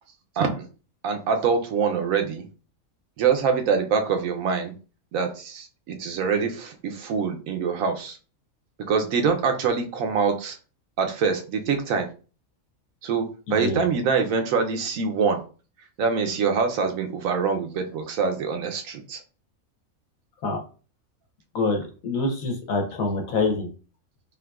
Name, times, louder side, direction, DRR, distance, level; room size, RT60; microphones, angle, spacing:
voice 1, 0.4-0.7 1.0-2.4 3.2-4.7 5.1-8.2 8.9-10.6 11.0-12.1 13.0-15.4 16.0-19.2, right 5 dB, 75° right, 5 dB, 1.0 m, -24 dB
voice 2, 13.5-13.8 20.4-20.6 21.5-23.7, left 3 dB, 75° left, 4 dB, 1.3 m, -26 dB
3.6 x 2.8 x 2.3 m, 0.36 s
omnidirectional pair, 1.5 m